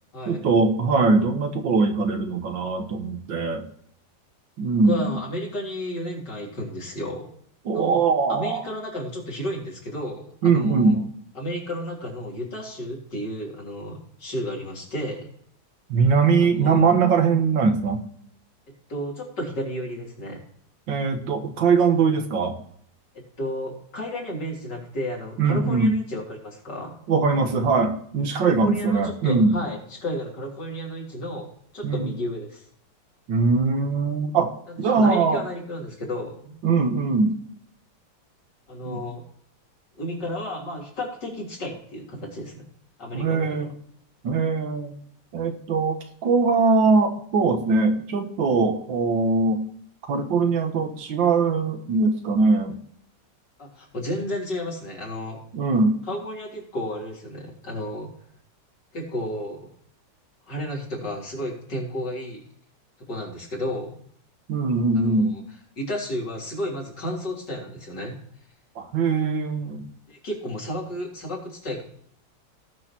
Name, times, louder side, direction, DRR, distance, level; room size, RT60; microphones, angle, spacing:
voice 1, 0.3-3.6 4.6-5.1 7.7-8.6 10.4-11.0 15.9-18.0 20.9-22.6 25.4-25.9 27.1-29.6 31.8-32.1 33.3-35.4 36.6-37.4 38.9-39.0 43.1-43.7 44.2-45.0 45.3-49.6 50.1-52.8 55.5-56.0 64.5-65.3 68.8-69.8, right 4 dB, 85° right, 5 dB, 2.0 m, -21 dB
voice 2, 4.7-7.3 7.7-8.0 8.3-11.0 11.4-15.3 16.4-16.9 18.9-20.4 23.1-27.0 28.4-31.5 31.7-32.6 34.7-36.6 38.7-39.2 40.0-42.7 43.0-43.7 53.6-55.4 56.1-58.1 58.9-59.6 60.5-62.4 63.1-63.9 64.9-65.4 65.8-68.2 70.1-71.8, left 1 dB, 70° left, -3 dB, 4.0 m, -32 dB
18.5 x 6.4 x 2.9 m, 0.65 s
omnidirectional pair, 2.0 m